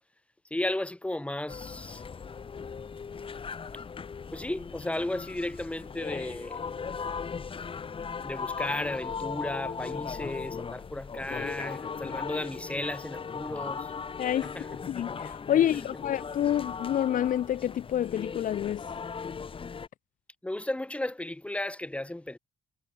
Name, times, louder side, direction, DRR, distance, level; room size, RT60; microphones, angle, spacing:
voice 1, 0.5-2.0 4.3-6.7 8.2-13.9 14.4-14.7 15.5-15.6 20.4-22.4, left 1 dB, 5° left, 3.7 m, -34 dB
sound 1, 1.5-19.9, left 5 dB, 30° left, 3.6 m, -38 dB
voice 2, 14.2-14.5 14.9-18.8, left 11 dB, 55° left, 1.1 m, -28 dB
cardioid pair, 110°, 17 cm